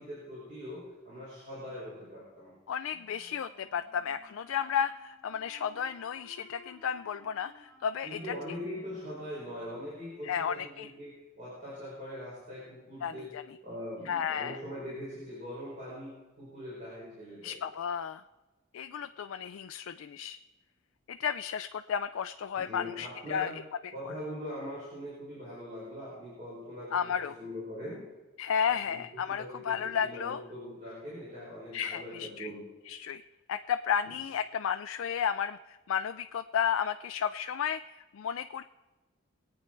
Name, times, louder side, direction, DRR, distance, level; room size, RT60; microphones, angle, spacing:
voice 1, 0.0-2.5 8.0-13.4 13.6-17.6 22.5-23.6 23.9-28.0 28.7-32.6, equal, 40° right, -8 dB, 4.9 m, -42 dB
voice 2, 2.7-8.2 10.2-10.9 13.0-13.4 14.1-14.6 17.4-18.2 18.7-20.4 21.1-23.5 26.9-27.3 28.4-30.4 31.7-32.5 32.9-38.6, left 8 dB, 85° left, 8 dB, 0.4 m, -33 dB
Wind instrument woodwind instrument, 2.9-10.4, left 3 dB, ahead, 3.3 m, -58 dB
22.5 x 8.8 x 4.5 m, 1.2 s
head